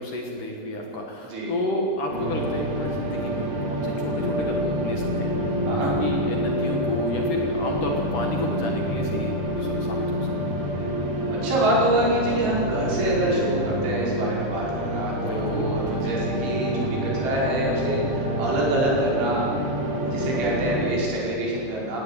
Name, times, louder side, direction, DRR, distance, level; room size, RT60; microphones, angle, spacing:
voice 1, 0.0-10.3 15.1-16.2, left 1 dB, 55° left, 1 dB, 2.5 m, -31 dB
sound 1, 2.1-20.9, equal, 35° right, 3.0 m, -27 dB
voice 2, 11.3-19.4 20.1-22.0, right 1 dB, 80° right, -4 dB, 7.6 m, -26 dB
17.5 x 17.5 x 8.8 m, 2.8 s
omnidirectional pair, 5.4 m